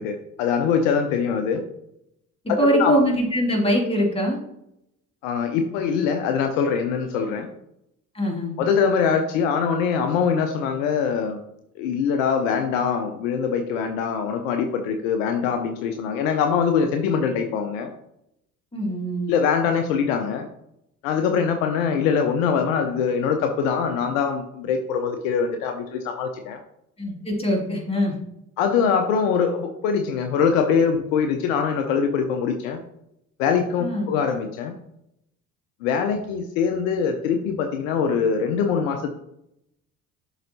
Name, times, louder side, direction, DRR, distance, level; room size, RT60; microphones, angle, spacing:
voice 1, 0.0-1.6 2.7-2.9 5.2-7.5 8.6-11.4 11.8-17.9 19.3-20.5 21.0-26.6 28.6-32.8 33.4-34.7 35.8-39.1, left 6 dB, 65° left, 6 dB, 0.8 m, -23 dB
voice 2, 2.4-4.4 8.1-8.6 18.7-19.4 27.0-28.1 33.8-34.1, equal, 15° left, -1 dB, 2.3 m, -23 dB
11.5 x 4.0 x 2.8 m, 0.80 s
figure-of-eight pair, 55°, 43 cm